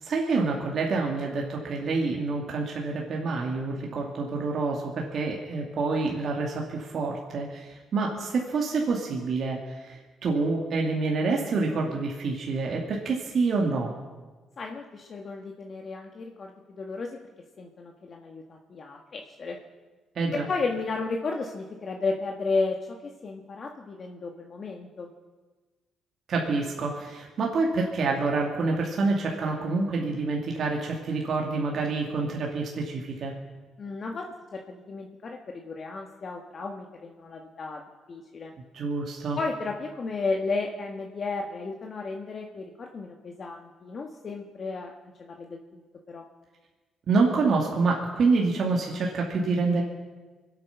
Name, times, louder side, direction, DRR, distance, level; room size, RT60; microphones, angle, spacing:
voice 1, 0.0-13.9 20.2-20.4 26.3-33.3 38.7-39.4 47.1-49.8, right 3 dB, 60° right, -1 dB, 2.5 m, -27 dB
voice 2, 14.6-17.2 17.6-19.6 20.3-23.0 23.2-25.1 33.8-34.2 34.5-37.8 38.1-38.5 39.3-44.9 45.2-45.8 46.1-46.3, left 3 dB, 45° left, 1 dB, 1.5 m, -33 dB
24.5 x 9.0 x 6.0 m, 1.3 s
cardioid pair, 90°, 0 cm